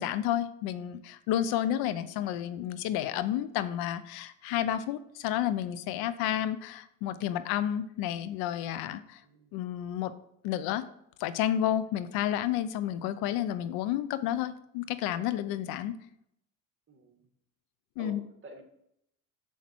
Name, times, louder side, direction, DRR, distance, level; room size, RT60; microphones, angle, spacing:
voice 1, 0.0-9.2 9.5-10.1 10.4-10.8 11.2-16.0 18.0-18.2, left 11 dB, 75° left, 14 dB, 0.7 m, -31 dB
voice 2, 9.2-9.5 16.9-17.2 18.0-18.6, right 3 dB, 35° right, 3 dB, 1.9 m, -49 dB
7.4 x 7.2 x 4.5 m, 0.75 s
supercardioid pair, 100°, 36 cm